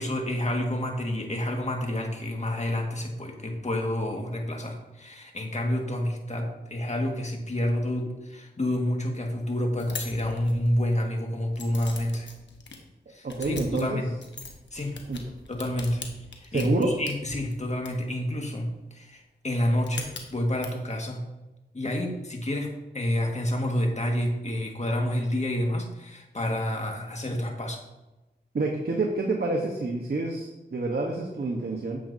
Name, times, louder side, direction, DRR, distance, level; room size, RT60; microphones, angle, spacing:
voice 1, 0.0-12.3 13.1-14.2 14.7-15.0 15.5-16.0 16.4-21.2 21.7-27.8, left 1 dB, 40° left, 1 dB, 1.8 m, -29 dB
sound 1, 9.8-11.0 11.5-12.8 13.3-17.9 19.8-20.7, left 4 dB, 85° left, 1.1 m, -41 dB
voice 2, 13.2-14.0 15.1-15.2 16.5-16.9 28.5-32.0, right 2 dB, 60° right, 0 dB, 1.2 m, -28 dB
10.0 x 7.5 x 2.8 m, 1.1 s
cardioid pair, 45°, 18 cm